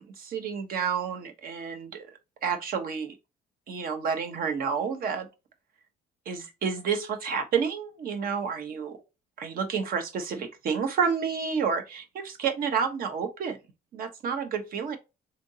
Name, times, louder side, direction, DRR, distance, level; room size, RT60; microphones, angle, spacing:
voice 1, 0.0-2.1 2.4-3.2 3.7-5.3 6.3-9.0 9.4-13.6 13.9-15.0, right 6 dB, 60° right, 1.1 m, -30 dB
3.8 x 3.4 x 2.7 m
cardioid pair, 110°, 17 cm